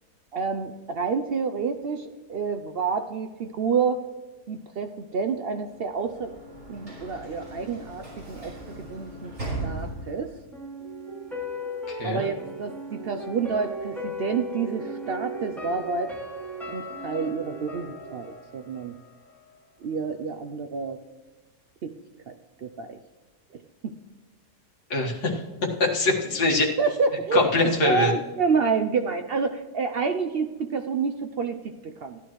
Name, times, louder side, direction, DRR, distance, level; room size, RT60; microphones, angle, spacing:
voice 1, 0.3-4.0 4.5-6.3 6.7-9.3 9.6-10.3 12.0-16.1 16.7-18.9 19.8-21.0 21.8-22.0 22.3-22.4 22.6-23.0 23.8-24.0 26.8-27.4 27.8-32.2, right 5 dB, 75° right, 7 dB, 0.5 m, -28 dB
Sliding door / Slam, 5.7-10.4, right 2 dB, 50° right, 4.4 m, -38 dB
sound 1, 10.5-19.5 19.8-19.9, equal, ahead, 2.8 m, -37 dB
voice 2, 11.9-12.3 24.9-25.4 25.8-26.7 27.3-28.1, left 2 dB, 75° left, -1 dB, 2.2 m, -23 dB
16.0 x 11.5 x 3.1 m, 1.2 s
omnidirectional pair, 1.7 m